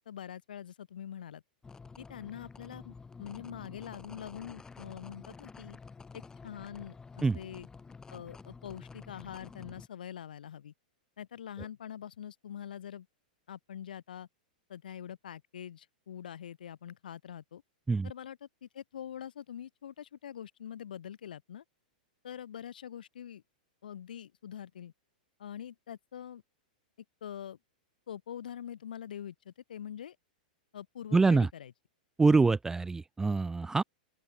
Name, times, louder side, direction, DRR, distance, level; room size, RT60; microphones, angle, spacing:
voice 1, 0.0-1.4 2.0-5.8 6.1-7.7 8.1-10.7 11.2-13.1 13.5-14.3 14.7-17.6 18.0-21.6 22.2-23.4 23.8-24.9 25.4-26.4 27.2-27.6 28.1-30.2 30.7-31.7, left 9 dB, 75° left, 3.2 m, -44 dB
sound 1, 1.6-9.9, left 4 dB, 15° left, 4.3 m, -50 dB
voice 2, 31.1-31.5 32.2-33.8, right 4 dB, 10° right, 0.5 m, -25 dB
open air
hypercardioid pair, 110°, 5 cm